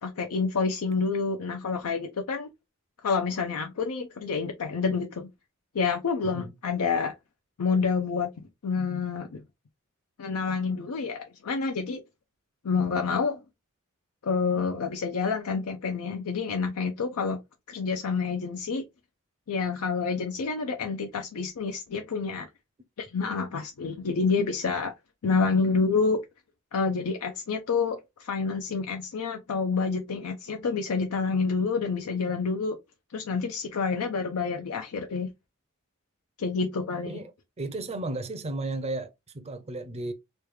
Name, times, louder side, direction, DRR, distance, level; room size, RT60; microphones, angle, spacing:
voice 1, 0.0-2.5 3.0-5.3 5.7-7.1 7.6-8.3 8.6-9.4 10.2-12.0 12.6-13.4 14.2-17.4 17.7-18.9 19.5-22.5 23.0-24.9 25.2-26.2 26.7-32.8 33.1-35.3 36.4-37.2, left 5 dB, 85° left, 0.5 m, -28 dB
voice 2, 6.2-6.5 37.1-37.3 37.6-40.1, right 2 dB, 30° right, 0.5 m, -34 dB
3.2 x 2.3 x 3.1 m
head